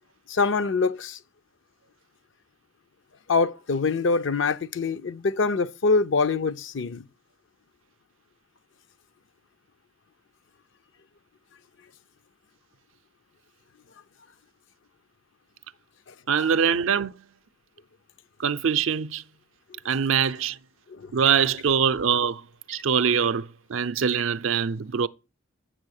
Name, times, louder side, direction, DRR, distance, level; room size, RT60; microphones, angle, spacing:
voice 1, 0.3-1.2 3.3-7.0 20.9-21.1, left 4 dB, 60° left, 0.6 m, -24 dB
voice 2, 16.3-17.1 18.4-19.2 19.8-20.6 21.1-22.4 22.7-25.1, right 7 dB, 70° right, 0.5 m, -23 dB
7.6 x 7.5 x 6.5 m
head